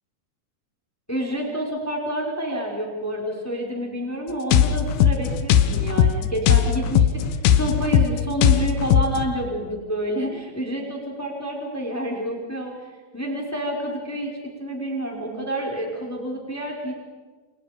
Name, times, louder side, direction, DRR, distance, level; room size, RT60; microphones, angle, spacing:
voice 1, 1.1-7.2 7.5-12.7 13.1-16.9, right 1 dB, 5° left, 0 dB, 4.7 m, -28 dB
sound 1, 4.5-9.2, left 9 dB, 90° left, 3.1 m, -19 dB
29.0 x 29.0 x 5.3 m, 1.4 s
omnidirectional pair, 4.3 m